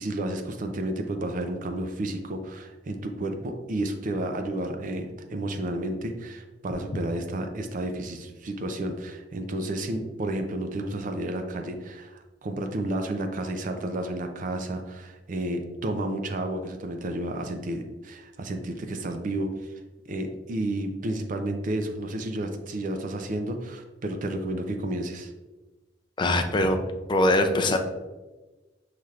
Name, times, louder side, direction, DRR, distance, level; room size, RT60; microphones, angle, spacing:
voice 1, 0.0-19.7 20.1-25.3, right 1 dB, 45° right, 6 dB, 0.4 m, -31 dB
voice 2, 26.2-26.8 27.1-27.8, left 1 dB, 25° left, 5 dB, 0.4 m, -22 dB
5.7 x 3.2 x 2.4 m, 1.2 s
head